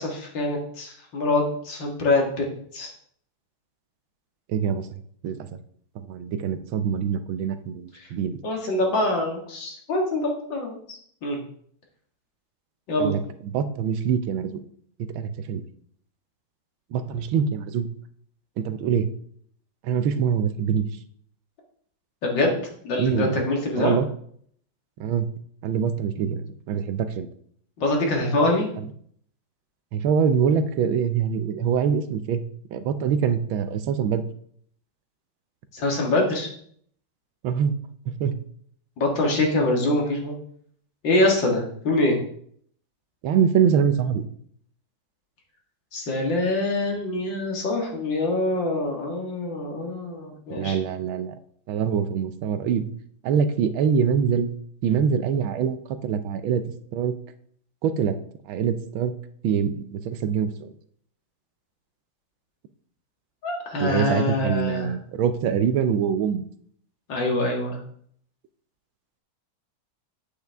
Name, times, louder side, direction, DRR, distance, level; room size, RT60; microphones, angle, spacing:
voice 1, 0.0-2.5 2.7-2.9 8.4-10.8 11.2-11.4 12.9-13.2 22.2-22.6 22.8-24.0 27.8-28.7 35.7-36.5 39.0-40.3 41.0-42.2 45.9-50.8 63.4-64.9 67.1-67.8, left 2 dB, 70° left, 0 dB, 2.5 m, -24 dB
voice 2, 4.5-5.4 6.0-8.4 13.0-14.6 15.0-15.7 16.9-17.9 18.6-19.1 19.8-20.8 23.0-23.4 23.8-24.1 25.0-25.3 25.6-27.3 28.8-28.9 29.9-32.4 32.7-34.2 37.4-37.8 38.1-38.3 43.2-44.2 50.5-51.4 51.7-52.9 53.2-54.5 54.8-55.8 56.0-56.6 56.9-57.1 57.8-58.2 58.4-59.1 59.4-60.7 63.8-66.5, right 7 dB, 85° right, 10 dB, 1.5 m, -24 dB
8.4 x 8.2 x 3.5 m, 0.62 s
omnidirectional pair, 2.2 m